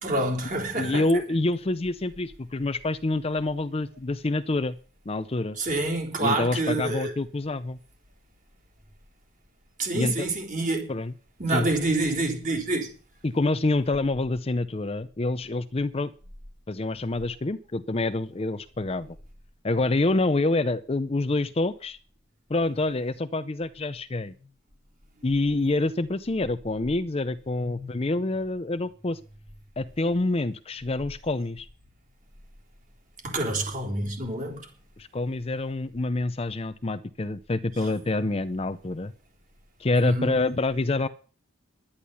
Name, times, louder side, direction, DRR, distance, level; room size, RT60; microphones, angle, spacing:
voice 1, 0.0-1.0 5.6-7.1 9.8-10.9 11.4-12.9 27.8-27.9 33.2-34.6 37.8-37.9 40.0-40.3, right 2 dB, 40° right, 3.6 m, -27 dB
voice 2, 0.8-4.8 5.1-5.6 6.2-7.8 9.9-10.1 10.9-11.1 11.5-11.7 13.2-16.1 16.7-19.1 19.6-22.0 22.5-24.3 25.2-29.2 29.8-31.7 35.0-39.1 39.8-41.1, left 2 dB, 30° left, 0.6 m, -27 dB
11.5 x 10.0 x 7.0 m
head